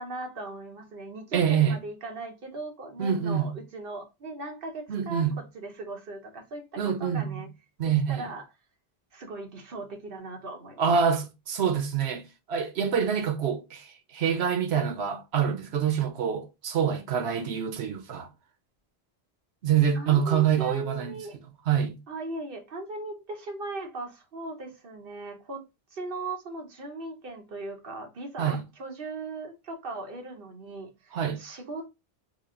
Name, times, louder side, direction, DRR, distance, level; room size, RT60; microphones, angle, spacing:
voice 1, 0.0-7.5 7.8-8.4 9.1-10.9 19.9-21.4 22.1-25.6 25.9-31.9, right 2 dB, 60° right, 1.1 m, -38 dB
voice 2, 1.3-1.8 3.0-3.5 4.9-5.3 6.8-7.5 7.8-8.3 10.8-12.2 12.5-18.3 19.6-21.2 21.7-22.0 28.4-28.6 31.1-31.4, right 8 dB, 85° right, 1.0 m, -26 dB
3.4 x 2.5 x 3.6 m
omnidirectional pair, 1.1 m